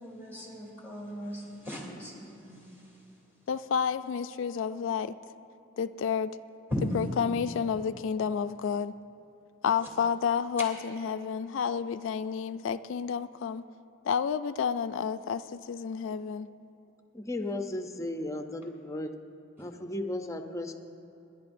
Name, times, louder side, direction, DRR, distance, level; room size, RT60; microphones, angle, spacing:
voice 1, 0.0-3.2 6.7-6.9 9.7-9.9 19.6-19.7, equal, 10° right, 2.8 m, -38 dB
voice 2, 3.5-5.1 5.8-6.4 6.9-8.9 9.6-13.6 14.0-16.5, left 7 dB, 70° left, 0.3 m, -30 dB
voice 3, 17.1-19.1 19.6-20.8, left 1 dB, 15° left, 0.6 m, -35 dB
29.0 x 11.0 x 2.6 m
head